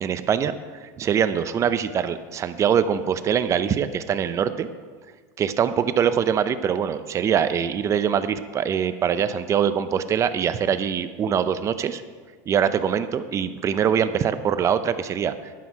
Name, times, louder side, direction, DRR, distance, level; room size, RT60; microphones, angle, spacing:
voice 1, 0.0-4.7 5.4-12.0 12.5-15.3, right 8 dB, 30° right, 12 dB, 0.7 m, -23 dB
12.0 x 9.7 x 4.8 m, 1.5 s
supercardioid pair, 115°, 10 cm